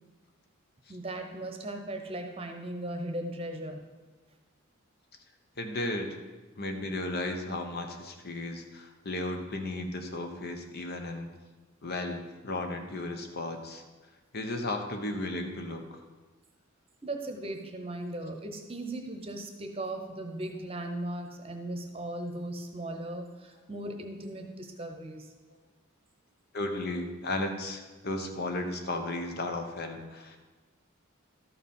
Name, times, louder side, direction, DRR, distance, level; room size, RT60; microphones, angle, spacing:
voice 1, 0.9-3.8 17.0-25.3, right 1 dB, 30° right, 5 dB, 0.9 m, -37 dB
voice 2, 5.6-6.2 6.6-11.3 11.8-13.8 14.3-15.8 26.5-30.4, left 2 dB, 50° left, 5 dB, 1.0 m, -34 dB
12.5 x 4.9 x 5.5 m, 1.3 s
head